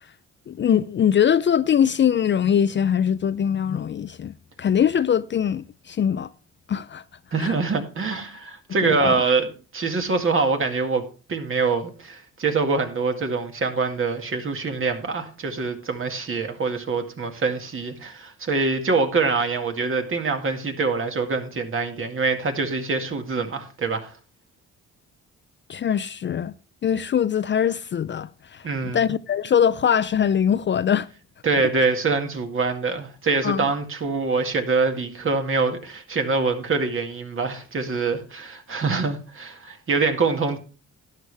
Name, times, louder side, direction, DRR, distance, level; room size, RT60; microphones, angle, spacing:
voice 1, 0.5-6.3 6.7-7.0 7.4-7.5 8.8-9.3 25.7-26.5 26.8-31.1 33.4-33.7, left 8 dB, 40° left, 0.5 m, -22 dB
voice 2, 7.3-9.5 9.7-24.1 28.6-29.0 31.4-40.6, right 4 dB, 45° right, 2.1 m, -24 dB
12.5 x 10.0 x 3.4 m
cardioid pair, 90°, 30 cm